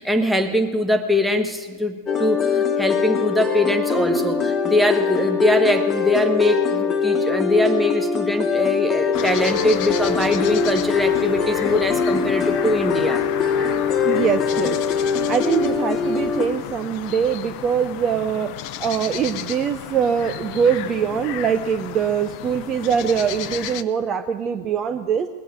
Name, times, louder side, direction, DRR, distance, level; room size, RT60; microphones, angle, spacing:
voice 1, 0.0-13.2 24.6-24.7, left 1 dB, 5° right, 4 dB, 1.4 m, -22 dB
sound 1, 2.1-16.5, left 6 dB, 25° left, 1.5 m, -22 dB
sound 2, 9.1-23.8, left 12 dB, 45° left, 0.6 m, -33 dB
voice 2, 14.0-14.8 15.3-18.5 18.8-25.3, right 7 dB, 30° right, 8 dB, 0.7 m, -23 dB
19.5 x 7.7 x 9.6 m, 1.5 s
figure-of-eight pair, 90°, 0 cm